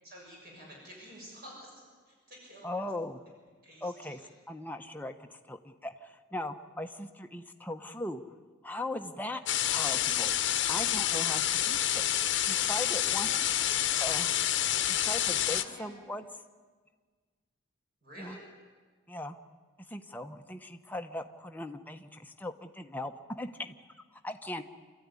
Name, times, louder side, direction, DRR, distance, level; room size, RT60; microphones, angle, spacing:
voice 1, 0.0-2.7 3.6-4.3 9.3-9.5 13.2-13.4 15.5-15.9 18.0-18.4, equal, 45° right, -2 dB, 6.2 m, -50 dB
voice 2, 2.6-3.2 3.8-4.2 4.5-8.2 8.6-9.4 9.7-10.4 10.7-12.0 12.4-13.3 14.0-14.4 14.8-16.2 18.2-18.4 19.1-19.4 19.9-23.1 23.4-24.6, left 1 dB, 10° left, 5 dB, 1.0 m, -39 dB
sound 1, 9.5-15.6, left 11 dB, 55° left, 1.0 m, -28 dB
27.0 x 14.0 x 9.8 m, 1.5 s
head